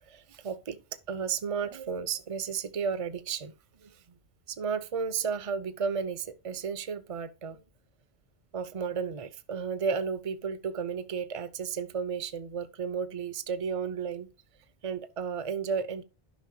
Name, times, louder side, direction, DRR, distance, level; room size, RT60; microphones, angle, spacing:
voice 1, 0.1-0.8 1.1-3.5 3.8-3.9 4.5-7.6 8.5-14.3 14.8-16.0, right 6 dB, 35° right, 0.7 m, -33 dB
11.5 x 5.5 x 2.7 m
omnidirectional pair, 1.1 m